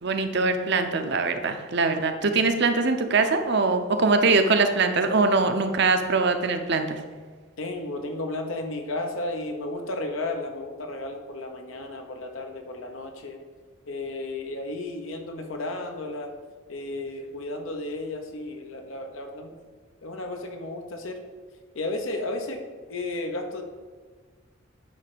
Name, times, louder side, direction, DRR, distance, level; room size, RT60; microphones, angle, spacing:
voice 1, 0.0-7.0, right 3 dB, 55° right, 7 dB, 0.7 m, -22 dB
voice 2, 7.6-13.4 13.9-16.3 16.7-19.5 20.0-21.2 21.7-22.6 22.9-23.6, left 2 dB, 80° left, 4 dB, 1.0 m, -33 dB
9.5 x 3.3 x 6.8 m, 1.5 s
head